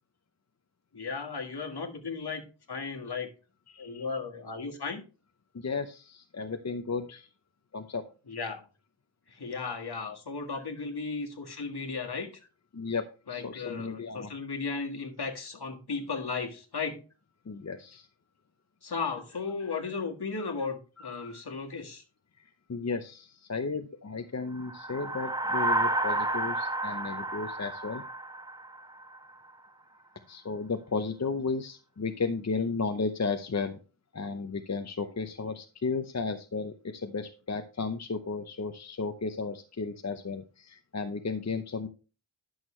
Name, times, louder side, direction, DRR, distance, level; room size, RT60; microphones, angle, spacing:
voice 1, 0.9-3.3 3.8-5.0 8.3-8.6 9.3-12.3 13.3-17.0 18.8-22.0, left 4 dB, 55° left, 3 dB, 1.7 m, -35 dB
voice 2, 3.7-4.1 5.5-7.3 7.7-8.0 10.5-10.6 12.7-14.3 17.5-18.1 19.6-19.9 21.0-21.4 22.7-28.0 30.3-33.8 34.1-41.9, left 4 dB, 35° left, 7 dB, 0.7 m, -34 dB
sound 1, 24.6-29.2, right 2 dB, 10° right, 0.8 m, -31 dB
10.5 x 6.4 x 3.1 m, 0.34 s
wide cardioid pair, 85°, 46 cm